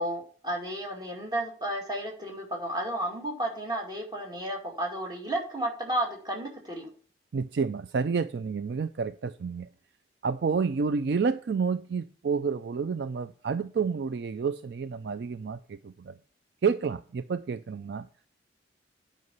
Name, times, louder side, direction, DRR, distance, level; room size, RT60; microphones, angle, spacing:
voice 1, 0.0-6.9, right 1 dB, 20° right, 0 dB, 2.4 m, -32 dB
voice 2, 7.3-9.7 10.2-16.2 16.6-18.1, right 5 dB, 60° right, 12 dB, 0.4 m, -29 dB
9.5 x 5.3 x 5.4 m, 0.43 s
head